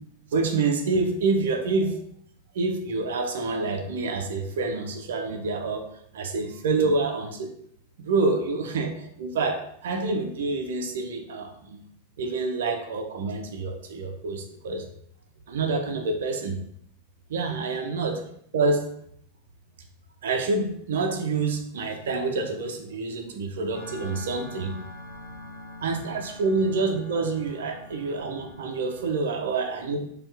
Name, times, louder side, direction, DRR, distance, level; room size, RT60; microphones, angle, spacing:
voice 1, 0.3-2.0 2.5-5.9 6.1-7.5 8.0-11.8 12.2-14.8 15.5-16.6 17.3-18.2 18.5-18.9 20.2-24.7 25.8-30.1, right 3 dB, 60° right, 4 dB, 0.7 m, -27 dB
sound 1, 23.7-29.2, left 1 dB, 45° left, 1.7 m, -43 dB
4.3 x 2.5 x 4.7 m, 0.68 s
figure-of-eight pair, 90°, 0 cm